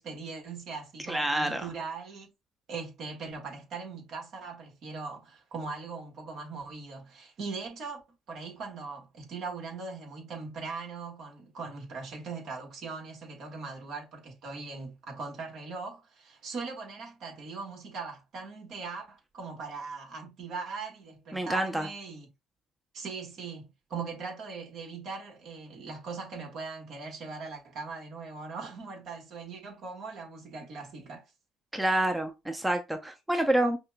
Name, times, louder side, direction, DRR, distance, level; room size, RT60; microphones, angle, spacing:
voice 1, 0.0-2.3 2.7-8.0 8.3-22.3 22.9-31.3, right 4 dB, 65° right, 1.4 m, -40 dB
voice 2, 1.1-1.7 21.3-21.9 31.7-33.8, right 1 dB, 10° right, 0.6 m, -28 dB
5.4 x 2.2 x 2.3 m
supercardioid pair, 75°, 0 cm